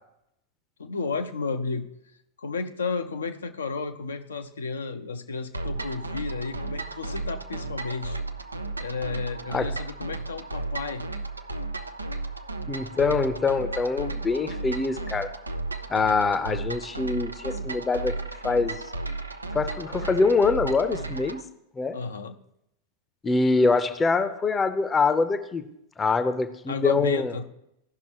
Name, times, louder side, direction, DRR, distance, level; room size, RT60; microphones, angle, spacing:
voice 1, 0.8-1.9 2.4-8.2 8.8-11.0 21.9-22.3 26.7-27.4, left 4 dB, 70° left, 7 dB, 0.7 m, -32 dB
sound 1, 5.5-21.4, right 2 dB, 80° right, 0.5 m, -34 dB
voice 2, 12.7-15.3 15.9-18.2 18.4-18.8 19.5-21.4 21.8-22.0 23.2-25.6 26.0-27.4, left 4 dB, 15° left, 10 dB, 0.7 m, -24 dB
16.0 x 5.9 x 3.0 m, 0.79 s
figure-of-eight pair, 90°, 0 cm